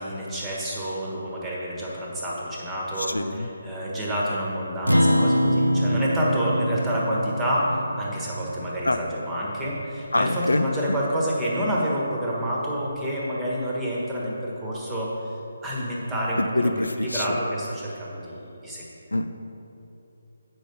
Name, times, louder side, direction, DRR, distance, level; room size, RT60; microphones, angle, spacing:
voice 1, 0.0-15.3 15.6-18.8, equal, 10° right, -5 dB, 1.3 m, -28 dB
voice 2, 3.1-3.5 8.8-9.0 10.1-10.7 16.5-17.4 19.1-19.3, left 2 dB, 70° left, 9 dB, 0.4 m, -24 dB
Acoustic guitar, 4.9-9.6, equal, 90° right, 0.5 m, -24 dB
8.1 x 5.2 x 5.4 m, 3.0 s
figure-of-eight pair, 145°, 0 cm